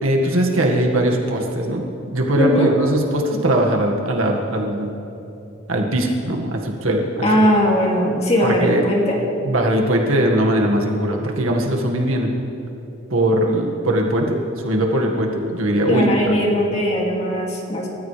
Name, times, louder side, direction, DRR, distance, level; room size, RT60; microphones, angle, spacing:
voice 1, 0.0-4.9 5.7-7.3 8.4-8.8 9.4-12.3 13.1-16.3, right 1 dB, 65° right, 1 dB, 1.9 m, -20 dB
voice 2, 2.4-2.7 7.2-9.2 15.8-17.9, equal, 30° left, -2 dB, 2.6 m, -19 dB
29.0 x 14.5 x 3.4 m, 2.9 s
head